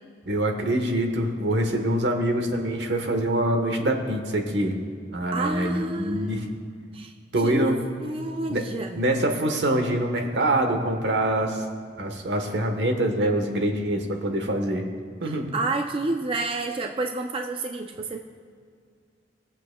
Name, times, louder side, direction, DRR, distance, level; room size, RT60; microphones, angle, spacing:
voice 1, 0.3-4.8 5.1-6.5 7.3-7.9 8.5-8.6 8.9-11.6 12.0-14.8 15.2-15.5, right 1 dB, 80° right, 4 dB, 1.1 m, -25 dB
voice 2, 5.3-6.5 6.9-7.1 7.4-7.7 8.0-9.0 15.2-18.2, right 3 dB, 30° right, 4 dB, 0.4 m, -30 dB
20.5 x 7.3 x 2.2 m, 2.1 s
head